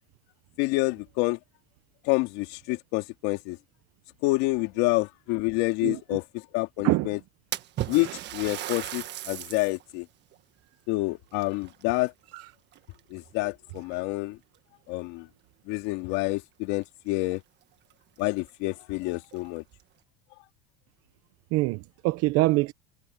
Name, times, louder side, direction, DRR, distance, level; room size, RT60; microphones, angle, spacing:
voice 1, 0.6-1.4 2.0-3.6 4.2-7.2 7.9-10.1 10.9-12.1 13.1-14.4 14.9-15.3 15.7-17.4 18.2-19.6, left 22 dB, 60° left, 2.3 m, -28 dB
Splash splatter, 7.5-9.8 10.3-10.4 11.3-12.4 12.7-13.2 14.0-14.1 14.5-14.6 16.8-16.9 17.2-17.3 17.9-18.0 18.4-18.5 19.2-19.8, right 13 dB, 35° right, 1.5 m, -36 dB
voice 2, 21.5-22.7, right 20 dB, 50° right, 0.9 m, -25 dB
supercardioid pair, 145°, 30 cm